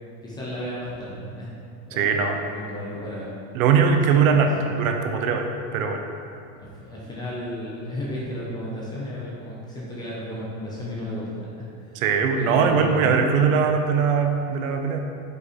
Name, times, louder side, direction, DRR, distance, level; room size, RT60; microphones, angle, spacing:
voice 1, 0.2-1.5 1.9-3.3 4.1-4.5 4.8-4.9 6.6-11.9 12.3-13.5, left 1 dB, 10° left, -6 dB, 0.4 m, -33 dB
voice 2, 1.9-2.4 3.5-5.5 5.7-6.0 11.9-15.0, right 6 dB, 75° right, 4 dB, 0.8 m, -21 dB
5.3 x 4.7 x 4.2 m, 2.6 s
supercardioid pair, 160°, 41 cm